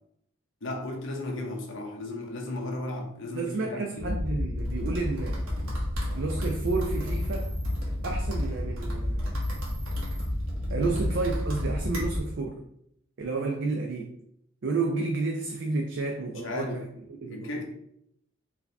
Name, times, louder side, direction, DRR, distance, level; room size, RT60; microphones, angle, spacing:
voice 1, 0.6-4.2 10.8-11.0 16.3-16.8 17.2-17.6, left 2 dB, 65° left, 0.9 m, -35 dB
voice 2, 3.3-5.4 6.1-7.5 8.0-9.2 10.7-12.6 13.2-14.2 14.6-16.9 17.2-17.6, right 3 dB, 60° right, 0.4 m, -31 dB
sound 1, 4.0-12.2, left 1 dB, 85° right, 1.3 m, -30 dB
4.6 x 2.7 x 3.3 m
head